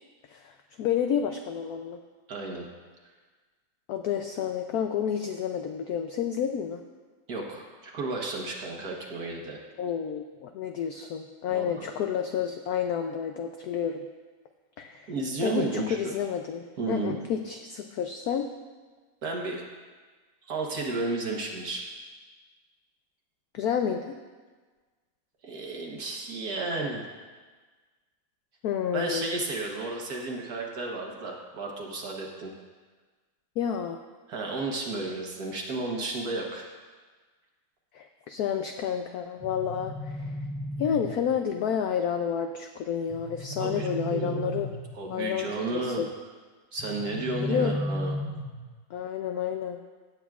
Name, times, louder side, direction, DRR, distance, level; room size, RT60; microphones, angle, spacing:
voice 1, 0.3-2.0 3.9-6.8 9.8-14.0 14.8-15.1 15.4-18.5 23.5-24.2 28.6-29.4 33.6-34.0 37.9-40.4 40.8-44.7 45.1-46.1 47.4-47.8 48.9-49.8, left 8 dB, 85° left, 6 dB, 0.8 m, -30 dB
voice 2, 2.3-2.7 7.3-9.6 11.5-11.9 15.1-16.1 16.8-17.2 19.2-19.6 20.5-21.8 25.4-27.0 28.9-32.5 34.3-36.7 43.6-44.6 44.9-46.0 46.7-48.1, right 2 dB, 55° right, 0 dB, 1.6 m, -33 dB
sound 1, 39.4-41.4 43.1-45.1 46.8-48.8, equal, 15° left, 1.5 m, -34 dB
16.5 x 8.1 x 2.4 m, 1.4 s
omnidirectional pair, 2.1 m